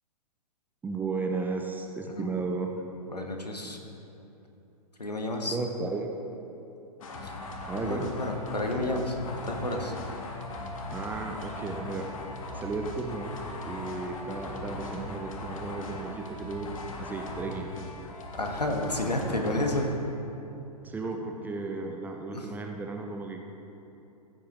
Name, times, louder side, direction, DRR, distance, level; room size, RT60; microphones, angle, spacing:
voice 1, 0.8-2.7 5.5-6.1 7.7-8.1 10.9-12.1 12.5-13.4 13.6-16.7 17.0-17.7 20.8-23.4, right 4 dB, 10° right, 3 dB, 0.4 m, -34 dB
voice 2, 3.1-3.8 5.0-5.6 7.2-7.3 7.8-9.9 18.3-19.9 22.3-22.5, left 1 dB, 85° left, 2 dB, 1.3 m, -31 dB
sound 1, 7.0-19.9, left 2 dB, 55° left, 1.4 m, -39 dB
15.0 x 8.3 x 3.0 m, 2.9 s
figure-of-eight pair, 115°, 20 cm